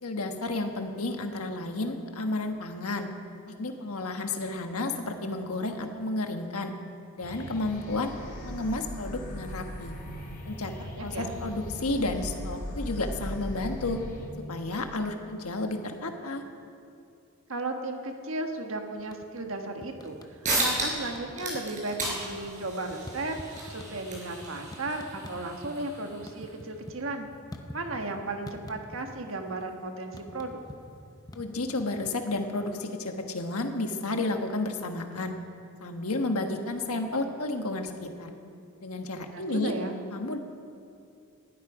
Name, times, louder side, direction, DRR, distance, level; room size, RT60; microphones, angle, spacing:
voice 1, 0.0-3.1 3.6-6.7 7.2-8.1 8.4-10.0 10.5-10.7 11.0-14.0 14.5-16.4 31.3-35.3 35.8-38.3 38.8-39.7 40.1-40.4, left 2 dB, 85° left, 5 dB, 1.4 m, -31 dB
sound 1, 7.2-14.3, equal, 40° left, 2.9 m, -38 dB
voice 2, 10.8-11.3 17.5-23.3 23.7-27.3 27.7-30.6 39.2-40.0, right 2 dB, 65° right, 4 dB, 1.5 m, -35 dB
sound 2, 19.0-19.5 19.8-20.9 21.1-21.6 21.9-25.8 26.1-28.1 28.5-29.3 29.6-32.5, left 1 dB, 15° left, 0.8 m, -45 dB
sound 3, 20.1-20.2 20.4-21.1 21.3-26.5, right 2 dB, 35° right, 4.8 m, -34 dB
19.5 x 12.5 x 4.9 m, 2.5 s
head